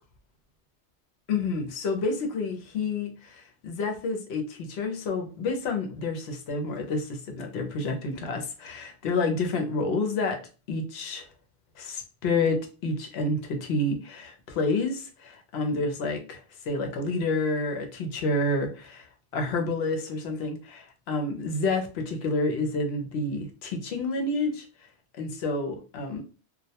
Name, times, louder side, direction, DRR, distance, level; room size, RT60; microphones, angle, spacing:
voice 1, 1.3-10.4 10.7-11.3 11.8-19.1 19.3-24.7 25.2-26.2, left 3 dB, 70° left, 0.8 m, -29 dB
2.2 x 2.1 x 2.7 m
omnidirectional pair, 1.2 m